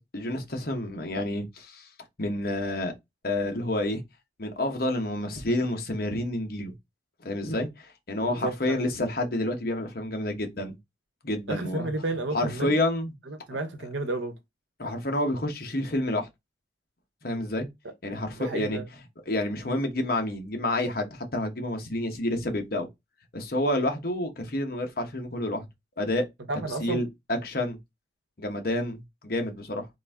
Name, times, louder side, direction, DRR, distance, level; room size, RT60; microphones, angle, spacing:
voice 1, 0.0-1.9 2.2-2.9 3.2-4.0 4.4-6.7 7.2-10.7 11.2-11.9 12.3-13.1 14.8-16.3 17.2-17.7 18.0-18.8 19.3-22.9 23.3-25.7 26.0-26.3 26.5-27.8 28.4-29.9, left 1 dB, 55° left, 1.0 m, -29 dB
voice 2, 8.2-8.8 11.5-12.8 13.3-14.4 18.3-18.8 26.5-27.0, right 2 dB, 90° right, 0.9 m, -32 dB
3.9 x 2.6 x 3.4 m
head